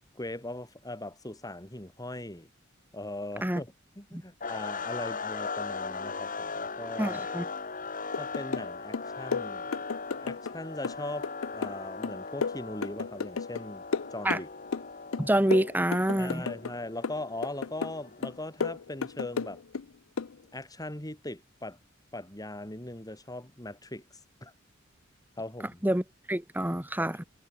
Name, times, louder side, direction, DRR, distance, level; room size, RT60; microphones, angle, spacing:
voice 1, 0.1-2.5 2.9-7.3 8.2-9.7 10.2-13.8 14.1-14.5 16.2-19.6 20.5-21.8 22.1-24.0 24.4-24.5 25.4-25.8 27.0-27.2, left 1 dB, 20° left, 6.5 m, -40 dB
sound 1, 4.4-18.5, left 4 dB, 45° left, 6.8 m, -39 dB
voice 2, 7.0-7.5 14.2-14.4 15.2-16.5 25.8-27.2, right 1 dB, 10° right, 1.8 m, -27 dB
sound 2, 8.1-8.7 8.9-10.6 10.8-13.6 13.9-14.9 15.1-16.7 17.0-18.0 18.2-19.8 20.2-20.3, left 5 dB, 85° left, 0.6 m, -33 dB
head